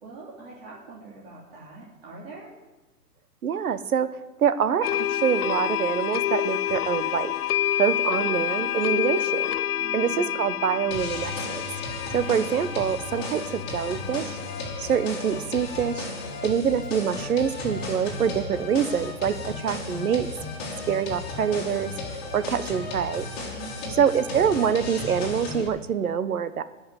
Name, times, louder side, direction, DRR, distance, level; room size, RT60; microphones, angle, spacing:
voice 1, 0.0-2.6 9.8-10.3 23.5-24.1, right 3 dB, 35° right, -6 dB, 2.9 m, -43 dB
voice 2, 3.4-4.1 4.4-7.3 7.8-9.5 9.9-11.6 12.1-14.4 14.8-20.3 20.9-21.9 22.3-23.3 24.0-26.6, right 8 dB, 65° right, 13 dB, 1.1 m, -25 dB
sound 1, 4.8-16.4, left 12 dB, 70° left, 0.5 m, -29 dB
sound 2, 10.9-25.7, left 3 dB, 15° left, 2.0 m, -34 dB
14.0 x 5.8 x 9.5 m, 1.2 s
hypercardioid pair, 170°, 48 cm